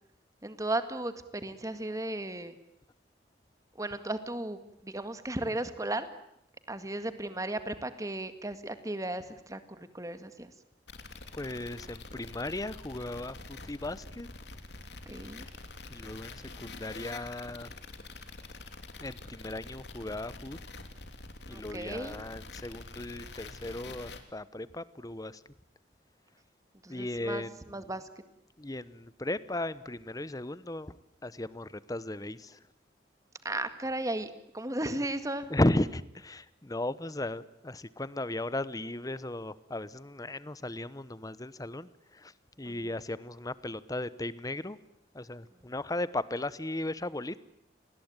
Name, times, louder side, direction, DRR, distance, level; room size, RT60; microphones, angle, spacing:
voice 1, 0.4-2.6 3.8-6.1 6.7-10.5 15.1-15.5 21.5-22.2 26.8-28.0 33.4-35.5 42.7-42.8, right 1 dB, 20° right, 10 dB, 1.9 m, -35 dB
sound 1, 10.9-24.2, left 3 dB, 70° left, 3.2 m, -46 dB
voice 2, 11.3-14.3 15.9-17.7 19.0-20.6 21.5-25.4 26.9-27.8 28.6-32.6 35.5-42.3 42.6-44.8 45.1-47.4, left 1 dB, 20° left, 17 dB, 1.0 m, -36 dB
29.5 x 20.5 x 9.0 m, 0.76 s
head